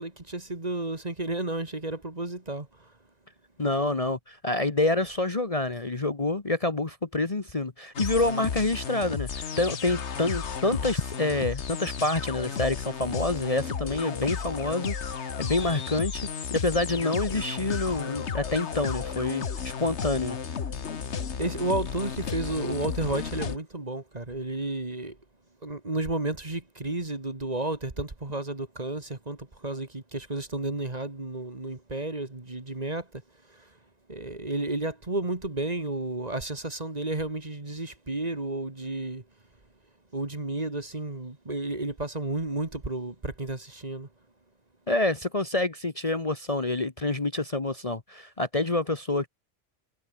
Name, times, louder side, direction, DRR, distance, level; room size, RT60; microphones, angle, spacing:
voice 1, 0.0-2.9 21.1-25.2 25.6-33.2 33.5-33.6 34.1-39.2 40.1-44.1, right 2 dB, 30° right, 2.3 m, -32 dB
voice 2, 3.6-20.4 44.9-49.3, left 2 dB, 30° left, 1.4 m, -27 dB
sound 1, 7.9-23.6, left 6 dB, 65° left, 1.6 m, -33 dB
omnidirectional pair, 1.3 m